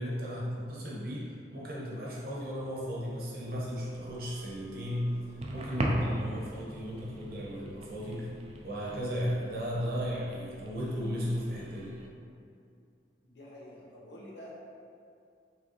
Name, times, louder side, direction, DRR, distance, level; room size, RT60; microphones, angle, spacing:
voice 1, 0.0-5.2 5.5-8.3 8.6-11.9, equal, 55° right, -5 dB, 0.9 m, -35 dB
sound 1, 2.1-7.4, equal, 15° left, 0.9 m, -59 dB
sound 2, 3.9-12.1, right 1 dB, 35° right, 0.4 m, -40 dB
voice 2, 13.2-14.5, left 1 dB, 80° left, -5 dB, 1.0 m, -48 dB
4.8 x 3.5 x 3.0 m, 2.4 s
head